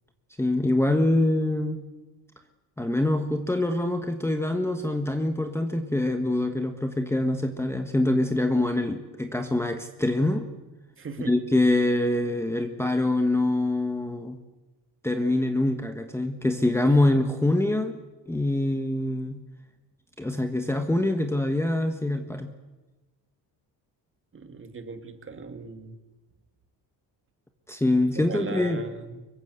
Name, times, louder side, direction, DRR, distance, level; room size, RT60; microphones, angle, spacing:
voice 1, 0.4-1.8 2.8-10.5 11.3-14.4 15.0-18.0 18.3-19.4 20.2-22.5 27.7-28.8, left 1 dB, 5° left, 6 dB, 1.4 m, -24 dB
voice 2, 11.0-11.4 24.3-26.0 28.1-29.2, right 4 dB, 30° right, 7 dB, 2.5 m, -38 dB
25.0 x 22.5 x 8.1 m, 1.1 s
cardioid pair, 155°, 41 cm